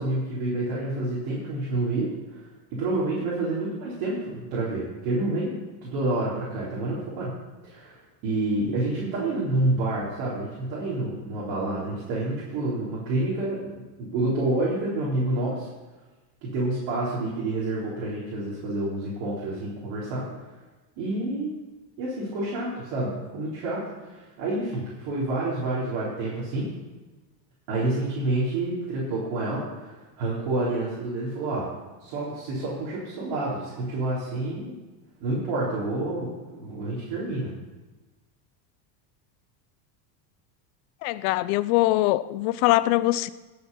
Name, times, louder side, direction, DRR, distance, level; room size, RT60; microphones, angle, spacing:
voice 1, 0.0-2.4 2.7-5.6 5.8-7.4 7.6-15.7 16.4-20.3 21.0-21.5 22.0-26.7 27.7-31.7 32.0-34.7 35.2-37.5, right 2 dB, 60° right, 4.2 m, -28 dB
voice 2, 41.0-43.3, left 16 dB, 65° left, 0.7 m, -22 dB
17.5 x 7.1 x 5.7 m
supercardioid pair, 135°, 50 cm